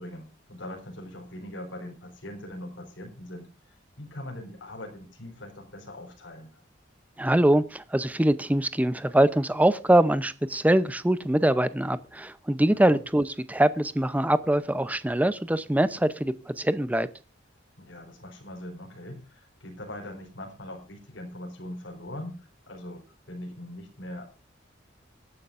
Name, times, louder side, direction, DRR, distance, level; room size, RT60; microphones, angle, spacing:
voice 1, 0.0-3.5 4.0-6.6 12.7-13.0 17.8-22.4 22.7-24.3, left 1 dB, 85° left, 4.1 m, -41 dB
voice 2, 7.2-17.1, right 1 dB, 10° right, 0.6 m, -23 dB
24.5 x 9.7 x 2.5 m
head